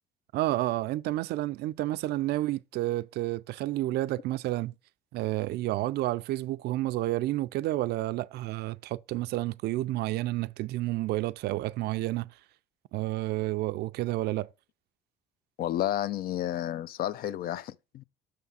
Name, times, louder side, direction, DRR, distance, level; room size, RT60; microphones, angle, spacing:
voice 1, 0.3-4.7 5.1-12.3 12.9-14.5, right 16 dB, 75° right, 0.4 m, -30 dB
voice 2, 15.6-18.0, left 12 dB, 60° left, 0.4 m, -31 dB
6.5 x 3.5 x 5.6 m
cardioid pair, 110°, 17 cm